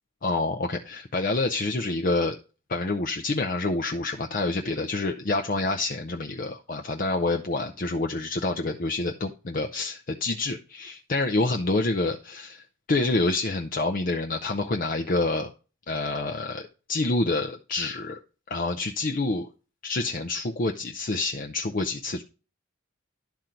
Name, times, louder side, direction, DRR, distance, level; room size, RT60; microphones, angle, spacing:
voice 1, 0.2-2.4 2.7-15.5 15.9-18.2 18.5-19.5 19.8-22.2, left 2 dB, 45° left, 2 dB, 0.6 m, -27 dB
11.5 x 3.9 x 4.3 m, 0.34 s
head